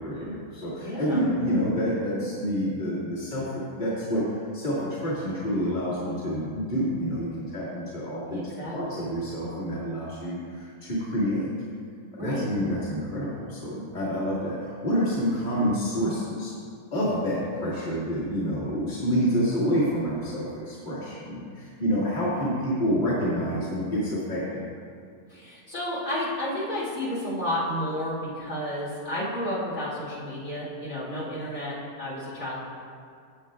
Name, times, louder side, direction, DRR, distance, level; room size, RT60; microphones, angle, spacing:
voice 1, 0.0-11.5 12.2-16.5 16.9-24.7, equal, 30° left, -10 dB, 2.3 m, -28 dB
voice 2, 0.8-1.2 8.3-9.0 12.2-12.5 25.3-32.6, left 1 dB, 55° left, -9 dB, 3.2 m, -31 dB
16.0 x 7.7 x 2.4 m, 2.3 s
omnidirectional pair, 1.6 m